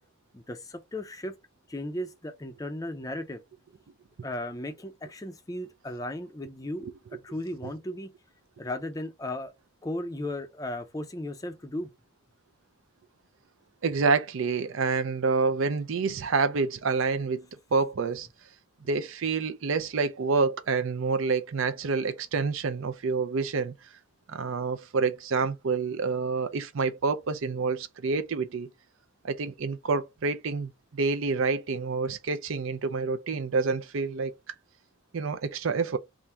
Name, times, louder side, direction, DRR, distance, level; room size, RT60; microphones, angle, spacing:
voice 1, 0.3-1.3 1.7-3.4 4.2-6.9 7.2-8.1 8.6-9.5 9.8-11.9, left 1 dB, 15° left, 0.5 m, -35 dB
voice 2, 13.8-18.3 18.9-23.7 24.3-28.7 29.2-34.5 35.1-36.0, right 4 dB, 65° right, 0.5 m, -28 dB
3.5 x 2.5 x 4.3 m
head